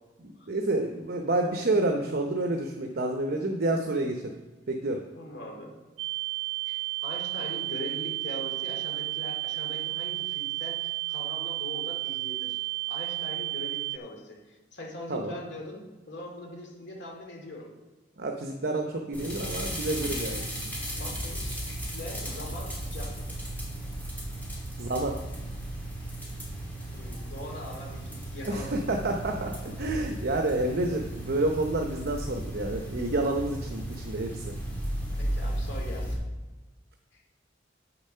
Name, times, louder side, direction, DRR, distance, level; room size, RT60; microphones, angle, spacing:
voice 1, 0.2-4.3 4.7-5.0 15.1-15.3 18.2-20.4 24.8-25.1 28.4-34.5, right 2 dB, 55° right, 3 dB, 0.8 m, -29 dB
voice 2, 5.1-5.7 6.7-12.6 12.9-17.7 21.0-23.2 26.9-28.8 35.2-36.2 37.1-37.2, left 1 dB, 65° left, 1 dB, 2.4 m, -42 dB
sound 1, 6.0-14.0, right 21 dB, 75° right, 0.4 m, -32 dB
sound 2, 19.1-36.1, right 1 dB, 10° left, 2.8 m, -35 dB
8.2 x 7.0 x 5.5 m, 1.2 s
head